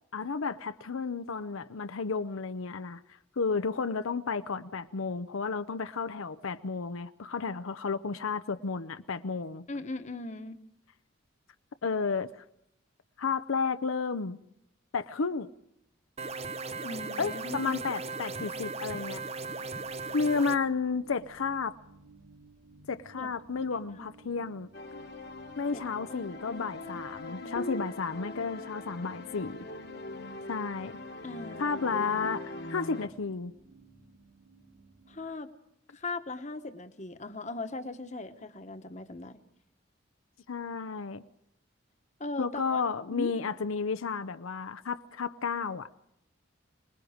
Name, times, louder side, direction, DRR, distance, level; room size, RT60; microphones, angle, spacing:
voice 1, 0.1-3.0 3.4-9.6 11.8-12.3 13.2-14.4 14.9-15.5 17.2-19.2 20.1-21.7 22.9-24.7 25.6-29.6 30.5-31.0 31.6-32.4 32.7-33.5 40.5-41.2 42.4-45.9, left 5 dB, 80° left, 0.7 m, -32 dB
voice 2, 9.7-10.6 16.8-17.8 23.2-23.3 23.7-24.1 25.7-25.8 26.1-27.0 27.3-27.6 31.2-31.8 32.2-32.4 35.1-35.5 35.9-39.4 42.2-42.8 43.1-43.3, left 2 dB, 35° left, 1.2 m, -39 dB
sound 1, 16.2-20.6, right 3 dB, 30° right, 0.7 m, -37 dB
sound 2, 19.3-35.3, right 3 dB, 70° right, 6.8 m, -57 dB
sound 3, 24.7-33.1, left 2 dB, 50° left, 1.4 m, -41 dB
25.0 x 20.5 x 5.1 m
head